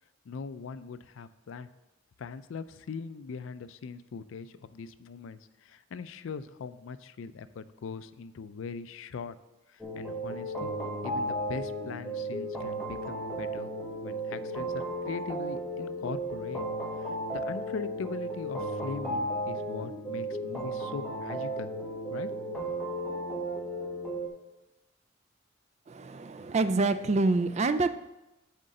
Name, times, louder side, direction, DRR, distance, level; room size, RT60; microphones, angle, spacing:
voice 1, 0.3-1.7 2.2-9.4 9.7-10.7 11.0-13.7 14.0-16.6 17.0-21.7 22.1-22.3, left 5 dB, 75° left, 14 dB, 0.4 m, -41 dB
sound 1, 9.8-24.3, right 1 dB, 5° left, 1.0 m, -34 dB
voice 2, 25.9-27.9, right 3 dB, 35° right, 12 dB, 0.3 m, -26 dB
8.0 x 3.7 x 6.5 m, 0.96 s
head